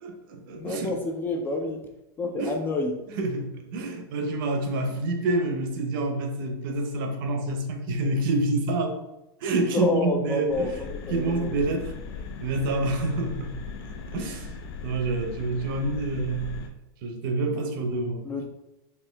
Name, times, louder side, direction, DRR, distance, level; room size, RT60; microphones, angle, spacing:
voice 1, 0.0-0.9 2.4-2.5 3.2-9.0 9.4-10.7 11.1-11.9 12.4-13.6 13.9-14.5 14.8-16.6 17.0-18.3, right 2 dB, 60° right, 5 dB, 0.7 m, -27 dB
voice 2, 0.5-1.9 2.2-3.0 9.7-11.5 18.2-18.5, left 2 dB, 15° left, 3 dB, 0.3 m, -29 dB
sound 1, 10.5-16.7, left 5 dB, 70° left, 0.5 m, -38 dB
4.4 x 2.6 x 3.3 m, 0.93 s
supercardioid pair, 155°, 13 cm